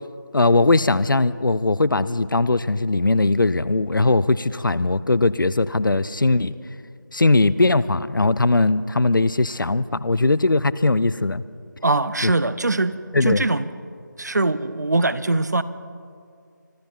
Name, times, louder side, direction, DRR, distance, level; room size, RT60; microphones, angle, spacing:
voice 1, 0.3-6.5 7.1-11.4 12.2-12.3 13.1-13.5, left 2 dB, 80° left, 18 dB, 0.6 m, -19 dB
voice 2, 11.8-12.9 13.2-13.7 14.2-15.6, right 2 dB, 60° right, 15 dB, 0.7 m, -22 dB
25.0 x 12.0 x 4.5 m, 2.3 s
figure-of-eight pair, 170°, 11 cm